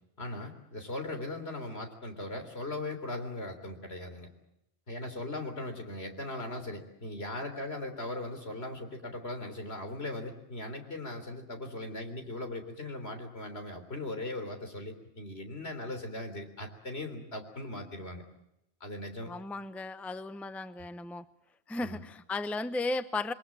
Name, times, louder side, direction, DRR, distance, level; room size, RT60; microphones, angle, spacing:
voice 1, 0.2-4.3 4.9-18.2 18.8-19.3 21.8-22.0, left 2 dB, 70° left, 6 dB, 3.9 m, -39 dB
voice 2, 19.3-21.2 21.7-23.3, left 2 dB, ahead, 12 dB, 0.8 m, -35 dB
28.5 x 21.5 x 7.6 m, 0.84 s
omnidirectional pair, 1.1 m